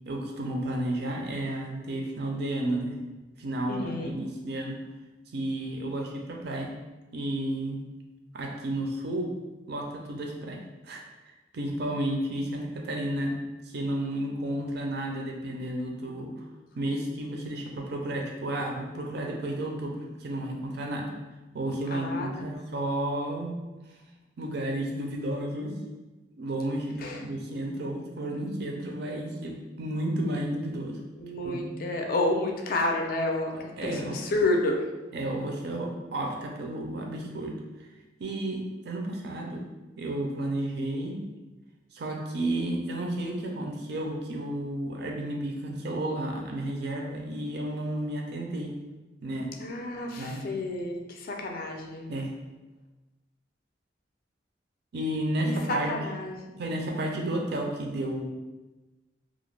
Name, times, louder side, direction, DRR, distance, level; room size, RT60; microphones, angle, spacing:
voice 1, 0.0-3.0 3.4-4.8 5.3-6.7 7.1-7.8 8.3-9.3 9.7-10.6 10.8-11.0 11.5-13.4 13.6-16.4 16.8-21.1 21.5-23.6 24.4-25.8 26.3-31.0 31.4-31.7 33.5-34.2 35.1-37.6 38.2-39.6 40.0-41.2 41.9-48.8 49.2-49.5 50.2-50.4 52.1-52.3 54.9-56.0 56.6-58.2, right 1 dB, 60° right, 1 dB, 0.4 m, -32 dB
voice 2, 3.7-4.2 21.9-22.6 27.0-27.2 31.2-34.8 49.6-52.1 55.4-56.6, left 2 dB, 55° left, 2 dB, 0.4 m, -30 dB
2.4 x 2.1 x 3.1 m, 1.1 s
head